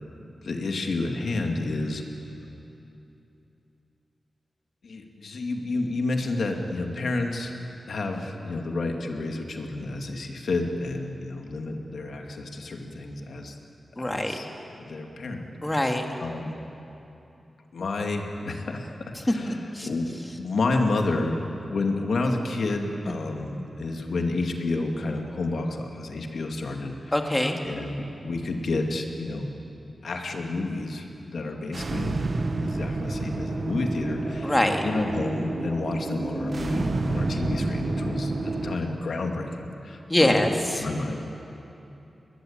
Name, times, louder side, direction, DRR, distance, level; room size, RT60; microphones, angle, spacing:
voice 1, 0.4-2.0 4.8-7.5 7.9-13.5 14.0-14.4 14.8-15.4 16.2-16.6 17.7-18.9 19.2-20.1 20.4-21.4 21.6-27.1 27.6-29.5 30.0-32.2 32.6-34.6 34.8-40.4 40.8-41.2, left 2 dB, 75° left, 2 dB, 2.3 m, -30 dB
voice 2, 14.0-14.4 15.6-16.0 19.3-19.9 23.1-23.2 27.1-27.6 34.4-34.8 40.1-40.9, left 1 dB, 15° left, 3 dB, 2.1 m, -24 dB
sound 1, 31.7-38.8, right 2 dB, 45° right, 1.3 m, -29 dB
22.0 x 20.0 x 8.9 m, 2.9 s
wide cardioid pair, 115°, 0 cm